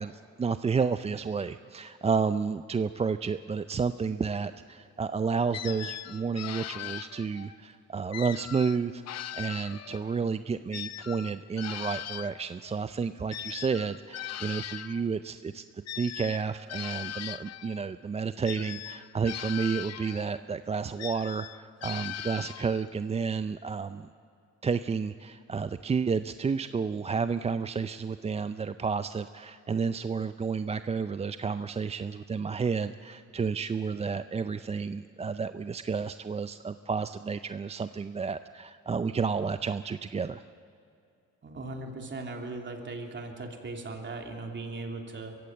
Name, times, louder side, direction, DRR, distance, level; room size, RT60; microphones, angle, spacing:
voice 1, 0.0-9.0 9.3-24.1 24.6-40.4, right 5 dB, 20° right, 12 dB, 0.4 m, -31 dB
sound 1, 5.5-7.6 8.1-10.2 10.7-15.1 15.9-17.8 18.4-20.4 21.0-23.0, left 11 dB, 60° left, 0.7 m, -40 dB
voice 2, 41.4-45.4, right 3 dB, 40° right, 2 dB, 3.1 m, -38 dB
22.5 x 15.5 x 7.9 m, 2.6 s
cardioid pair, 90°, 30 cm